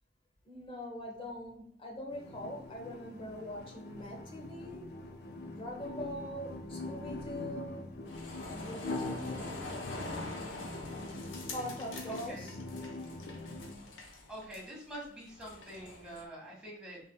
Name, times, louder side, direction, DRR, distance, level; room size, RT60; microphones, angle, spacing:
voice 1, 0.5-4.9 5.5-7.9 8.5-9.7 11.5-12.6, left 1 dB, 30° left, 0 dB, 1.0 m, -43 dB
sound 1, 2.1-13.7, left 2 dB, 55° left, 0.5 m, -43 dB
sound 2, 8.0-16.2, left 2 dB, 75° left, 0.9 m, -45 dB
voice 2, 12.1-12.5 14.3-17.0, right 1 dB, 5° right, -5 dB, 1.6 m, -46 dB
5.5 x 3.6 x 2.2 m, 0.64 s
head